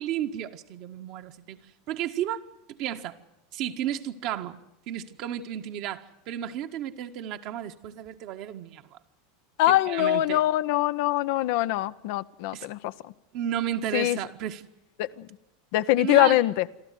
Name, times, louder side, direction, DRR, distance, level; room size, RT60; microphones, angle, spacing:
voice 1, 0.0-1.6 1.9-3.2 3.5-4.6 4.9-9.0 9.7-10.4 12.5-12.7 13.3-14.6 16.0-16.4, right 11 dB, 55° right, 1.6 m, -33 dB
voice 2, 9.6-12.9 13.9-14.2 15.0-15.3 15.7-16.6, left 15 dB, 65° left, 0.8 m, -23 dB
27.0 x 13.5 x 9.4 m
hypercardioid pair, 95°, 0 cm